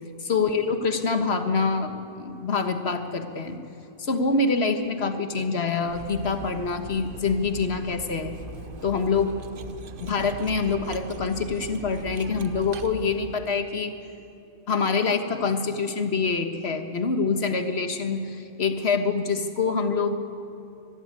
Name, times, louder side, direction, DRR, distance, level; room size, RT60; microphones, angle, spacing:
voice 1, 0.2-3.6 4.0-8.4 8.8-9.4 10.0-13.9 14.7-20.2, left 4 dB, 50° left, 7 dB, 1.6 m, -25 dB
Cutlery silverware, 5.8-13.6, right 2 dB, 45° right, 1.0 m, -40 dB
24.0 x 12.0 x 9.7 m, 2.8 s
omnidirectional pair, 1.4 m